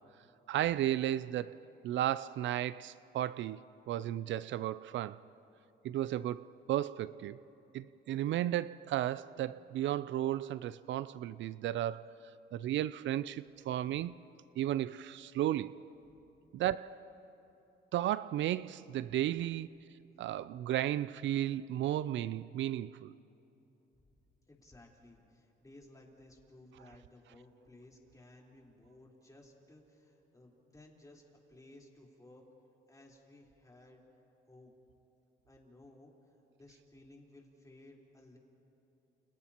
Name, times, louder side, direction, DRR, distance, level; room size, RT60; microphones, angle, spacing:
voice 1, 0.5-1.6 1.8-5.2 5.8-7.4 7.7-12.1 12.5-14.2 14.6-15.8 16.5-17.1 17.9-19.7 20.2-23.1, right 12 dB, 70° right, 0.4 m, -34 dB
voice 2, 24.5-31.2 31.5-32.4 32.9-34.0 34.5-34.7 35.4-36.1 36.6-38.4, left 1 dB, 15° left, 4.0 m, -58 dB
30.0 x 29.5 x 2.9 m
cardioid pair, 90°, 20 cm